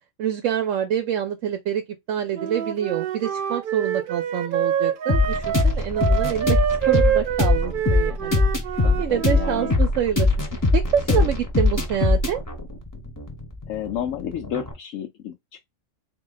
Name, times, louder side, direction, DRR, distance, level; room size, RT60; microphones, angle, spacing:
voice 1, 0.2-1.8 2.1-6.6 6.9-8.4 9.0-10.3 10.7-12.4, right 9 dB, 80° right, 1.0 m, -26 dB
Wind instrument woodwind instrument, 2.3-9.8, right 9 dB, 60° right, 0.6 m, -26 dB
sound 1, 5.1-14.7, left 3 dB, 15° left, 0.8 m, -22 dB
voice 2, 8.8-9.7 11.1-11.3 13.7-15.6, left 9 dB, 85° left, 1.0 m, -31 dB
3.8 x 2.8 x 3.8 m
omnidirectional pair, 1.3 m